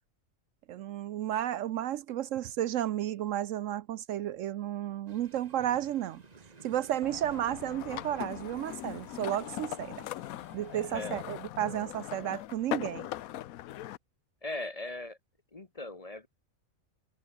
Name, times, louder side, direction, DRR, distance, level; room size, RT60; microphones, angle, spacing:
voice 1, 0.7-6.2 6.6-10.1 10.5-13.1, right 11 dB, 70° right, 0.9 m, -33 dB
sound 1, 5.1-10.8, right 4 dB, 30° right, 1.4 m, -55 dB
sound 2, 7.0-14.0, left 14 dB, 85° left, 1.1 m, -40 dB
voice 2, 10.7-11.2 14.4-15.2 15.5-16.3, left 2 dB, 30° left, 1.1 m, -39 dB
omnidirectional pair, 1.4 m